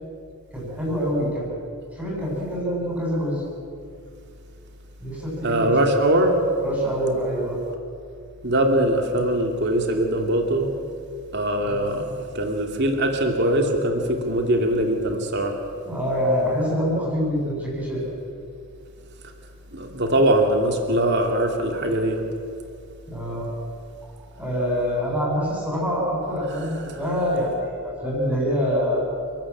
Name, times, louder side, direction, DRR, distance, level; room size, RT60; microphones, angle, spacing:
voice 1, 0.5-1.5 1.9-3.4 5.0-5.8 6.6-7.6 11.6-12.1 15.9-18.0 23.1-23.5 24.4-29.0, equal, 5° right, -4 dB, 7.8 m, -25 dB
voice 2, 5.4-6.4 8.4-10.7 11.3-12.0 12.3-15.5 19.7-22.2 26.9-27.0, right 1 dB, 50° right, 3 dB, 2.7 m, -21 dB
30.0 x 13.5 x 8.7 m, 2.5 s
head